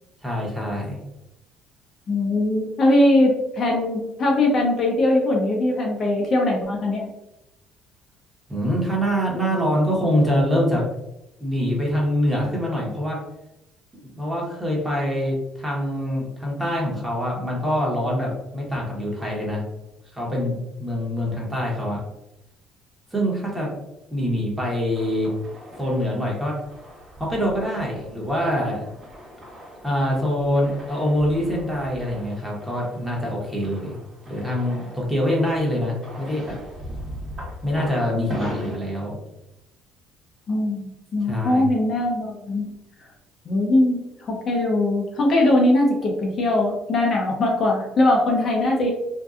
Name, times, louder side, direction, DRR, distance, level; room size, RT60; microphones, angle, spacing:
voice 1, 0.2-1.0 8.5-10.8 11.4-13.2 13.9-19.6 20.1-22.0 23.1-23.7 24.1-25.3 25.8-26.5 27.2-28.9 29.8-33.9 34.3-36.6 37.6-39.2 41.2-41.6, equal, 10° right, -3 dB, 1.0 m, -24 dB
voice 2, 2.1-7.1 40.5-42.7 43.5-48.9, left 1 dB, 45° left, -1 dB, 0.6 m, -21 dB
sound 1, 24.9-38.8, equal, 35° right, 1.2 m, -40 dB
2.6 x 2.2 x 2.4 m, 0.89 s
cardioid pair, 100°, 0 cm